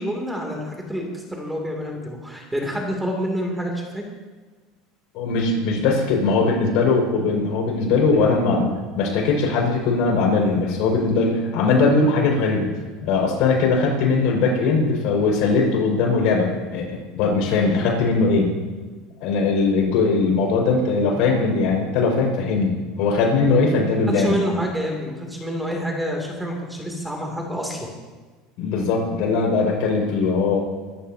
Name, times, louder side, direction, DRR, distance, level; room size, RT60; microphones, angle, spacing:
voice 1, 0.0-4.0 24.1-27.9, equal, 5° right, 0 dB, 2.9 m, -27 dB
voice 2, 5.1-12.7 13.0-18.5 19.2-24.4 28.6-30.6, left 4 dB, 65° left, -1 dB, 5.7 m, -20 dB
24.5 x 14.0 x 2.9 m, 1.4 s
supercardioid pair, 130°, 0 cm